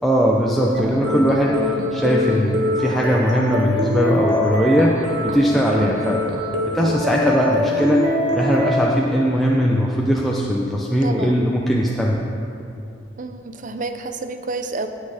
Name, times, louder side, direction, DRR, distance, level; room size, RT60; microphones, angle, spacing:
voice 1, 0.0-6.2 6.7-8.0 8.3-12.2, equal, ahead, -4 dB, 0.7 m, -19 dB
sound 1, 0.7-8.8, left 1 dB, 65° right, 1.7 m, -24 dB
voice 2, 11.0-11.4 13.2-14.9, right 3 dB, 45° right, 8 dB, 0.7 m, -30 dB
18.5 x 6.4 x 5.0 m, 2.6 s
head